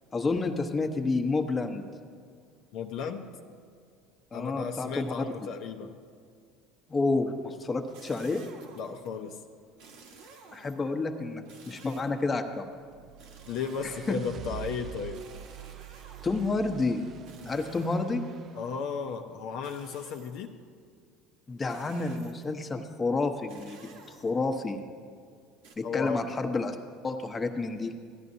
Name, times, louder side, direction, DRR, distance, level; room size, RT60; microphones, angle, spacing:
voice 1, 0.1-1.8 4.3-5.2 6.9-8.4 10.5-12.7 14.1-14.2 16.2-17.0 17.4-18.2 21.5-24.8 25.8-26.8 27.0-27.9, left 3 dB, 25° left, 4 dB, 0.9 m, -29 dB
voice 2, 2.7-3.3 4.3-5.9 8.8-9.4 13.5-15.2 18.6-20.6 25.8-26.3, left 6 dB, 65° left, 3 dB, 0.7 m, -35 dB
sound 1, 7.9-9.1 9.8-11.0 11.4-12.4 13.2-14.4 15.1-16.6 17.2-18.4 19.6-20.5 21.7-22.6 23.5-24.6 25.6-25.8, right 4 dB, 75° right, 1.3 m, -53 dB
sound 2, 12.7-18.8, right 10 dB, 45° right, 0.3 m, -45 dB
16.5 x 11.0 x 2.7 m, 2.2 s
supercardioid pair, 90°, 0 cm